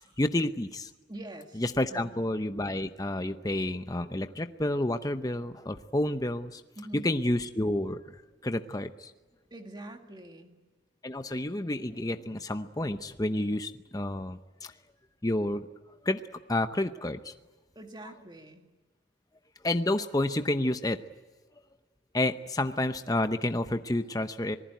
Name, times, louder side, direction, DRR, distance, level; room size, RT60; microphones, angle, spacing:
voice 1, 0.2-0.9 1.6-6.6 6.9-8.2 8.4-9.1 11.0-14.7 15.2-15.7 16.0-16.2 16.5-17.3 19.6-21.0 22.1-24.6, left 1 dB, 20° left, 9 dB, 0.8 m, -30 dB
voice 2, 1.1-1.6 1.9-2.2 6.8-7.1 9.5-10.6 17.8-18.7, right 1 dB, 20° right, 4 dB, 2.2 m, -44 dB
26.5 x 19.5 x 9.2 m, 1.3 s
head